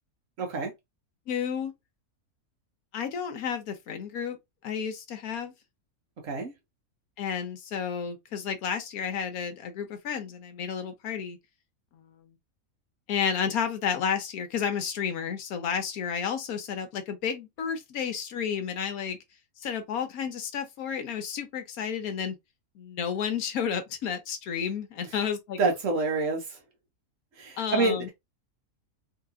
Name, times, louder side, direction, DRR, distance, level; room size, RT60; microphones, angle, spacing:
voice 1, 0.4-0.7 6.2-6.5 25.6-26.4 27.4-28.1, right 3 dB, 65° right, 1.4 m, -27 dB
voice 2, 1.3-1.7 2.9-4.4 4.6-5.5 7.2-11.4 11.9-12.3 13.1-19.2 19.6-22.4 22.8-25.6 27.6-28.1, left 7 dB, 80° left, 1.3 m, -31 dB
3.4 x 2.9 x 2.4 m
omnidirectional pair, 1.5 m